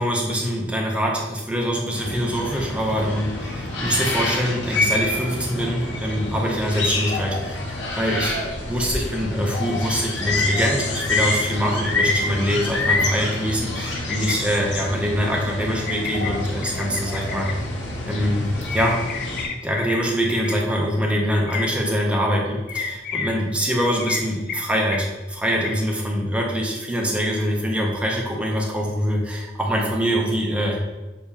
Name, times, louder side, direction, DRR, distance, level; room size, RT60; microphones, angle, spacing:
voice 1, 0.0-7.6 8.0-8.4 8.7-17.5 18.1-19.0 19.6-30.8, equal, 5° right, -2 dB, 0.6 m, -24 dB
sound 1, 1.9-19.5, left 2 dB, 85° left, 0.9 m, -27 dB
sound 2, 13.9-14.3 15.9-16.3 16.6-17.6 18.8-20.0 20.3-20.5 21.5-21.7 22.7-23.3 24.0-24.2 24.5-24.6 24.9-25.0 25.6-25.8, left 7 dB, 55° left, 0.4 m, -30 dB
6.7 x 2.8 x 2.3 m, 1.1 s
head